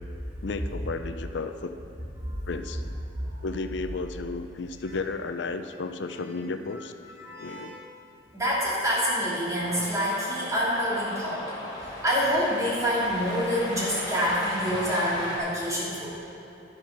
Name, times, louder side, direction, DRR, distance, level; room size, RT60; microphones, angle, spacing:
voice 1, 0.4-1.8 2.5-2.8 3.4-6.9 7.4-7.8, left 3 dB, 90° left, 8 dB, 0.5 m, -33 dB
voice 2, 7.2-7.8 8.3-11.4 11.8-16.2, equal, 20° right, -8 dB, 3.0 m, -27 dB
Cheering, 9.6-15.4, left 1 dB, 25° left, 2.5 m, -37 dB
11.5 x 7.3 x 5.9 m, 2.8 s
head